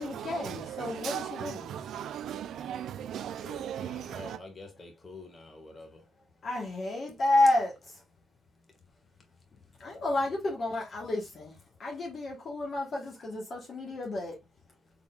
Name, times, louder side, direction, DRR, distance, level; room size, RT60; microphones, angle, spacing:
voice 1, 0.0-1.7 6.4-8.0 9.8-14.3, left 2 dB, 50° left, 1.2 m, -30 dB
voice 2, 0.8-4.4, right 10 dB, 75° right, 0.4 m, -37 dB
voice 3, 3.4-5.9, left 2 dB, 30° left, 1.5 m, -47 dB
4.0 x 3.6 x 2.3 m
cardioid pair, 90°, 0 cm